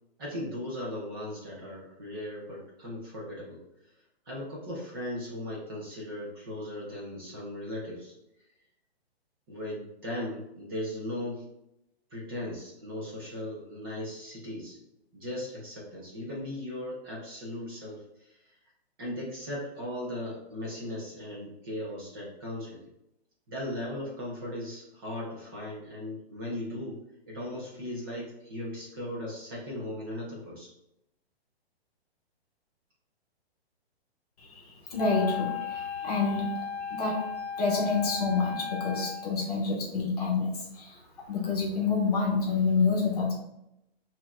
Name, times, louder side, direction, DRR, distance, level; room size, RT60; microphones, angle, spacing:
voice 1, 0.2-3.6 4.2-8.1 9.5-11.5 12.1-14.8 15.1-18.5 19.0-22.8 23.5-30.7, left 1 dB, 20° right, -4 dB, 0.9 m, -37 dB
voice 2, 34.4-36.5 36.8-37.3 37.6-43.3, left 4 dB, 40° left, -1 dB, 1.1 m, -28 dB
Wind instrument woodwind instrument, 35.0-39.4, left 7 dB, 80° left, 0.7 m, -36 dB
6.8 x 2.9 x 2.5 m, 0.83 s
hypercardioid pair, 170°, 32 cm